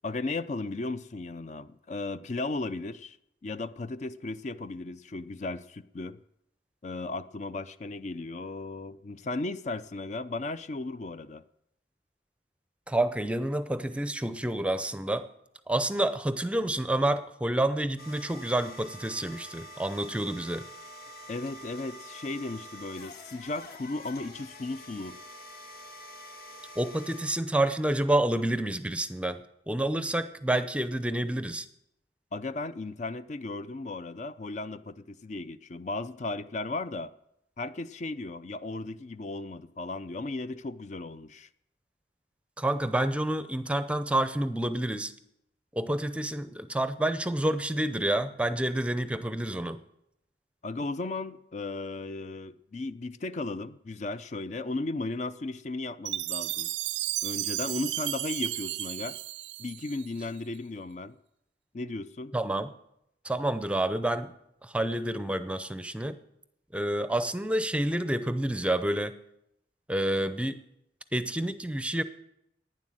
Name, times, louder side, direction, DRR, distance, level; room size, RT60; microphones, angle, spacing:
voice 1, 0.0-3.2 3.4-6.2 6.8-11.4 21.3-25.2 32.3-37.1 37.6-41.5 50.6-56.7 57.2-59.2 59.6-61.2 61.7-62.3, left 2 dB, 40° left, 13 dB, 0.5 m, -35 dB
voice 2, 12.9-15.3 15.7-20.7 26.8-31.7 42.6-45.1 45.7-49.8 62.3-62.7 63.2-64.3 64.6-66.2 66.7-69.1 69.9-70.6 71.1-72.0, right 1 dB, 5° right, 12 dB, 0.6 m, -28 dB
sound 1, 18.0-27.3, equal, 60° left, 1.8 m, -46 dB
Chime, 56.1-60.3, right 15 dB, 80° right, 0.4 m, -33 dB
11.5 x 9.8 x 7.7 m, 0.79 s
head